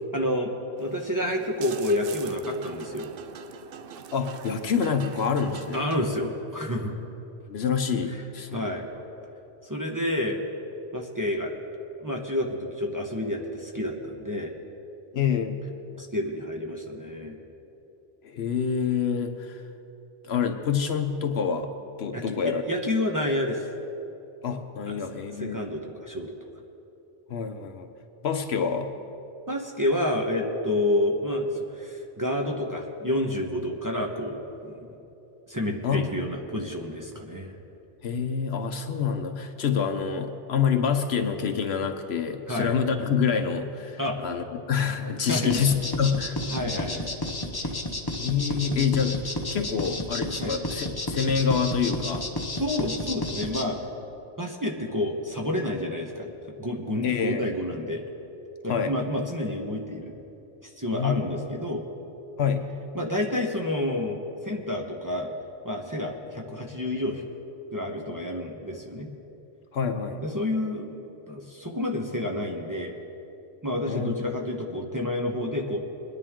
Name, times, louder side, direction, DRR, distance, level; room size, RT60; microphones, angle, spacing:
voice 1, 0.1-0.5 0.8-3.1 5.7-6.9 8.5-8.9 9.6-10.4 10.9-11.5 12.0-14.5 15.9-17.4 22.1-23.7 24.9-25.0 25.4-26.4 29.5-34.9 35.5-37.6 42.5-42.8 44.0-44.2 45.3-45.5 46.5-47.0 50.4-50.6 52.5-53.8 54.4-56.3 56.6-58.0 58.6-60.1 60.6-61.8 62.9-65.3 65.6-67.3 67.7-69.1 70.2-70.9 71.3-72.9 73.6-75.8, left 1 dB, 20° right, 0 dB, 1.0 m, -29 dB
sound 1, 0.8-6.0, right 7 dB, 60° right, 0.7 m, -43 dB
voice 2, 4.1-5.9 7.5-8.7 15.1-15.6 18.2-19.6 20.2-21.7 22.0-22.6 24.4-25.6 27.3-27.9 28.2-28.9 35.8-36.1 38.0-46.4 47.6-47.7 48.2-52.3 57.0-57.5 58.7-59.0 60.9-61.3 62.4-62.7 69.7-70.2 73.9-74.1, left 6 dB, 65° left, 6 dB, 1.0 m, -27 dB
sound 2, 45.5-53.6, left 1 dB, 20° left, 0.8 m, -31 dB
22.0 x 10.0 x 3.7 m, 2.9 s
omnidirectional pair, 1.2 m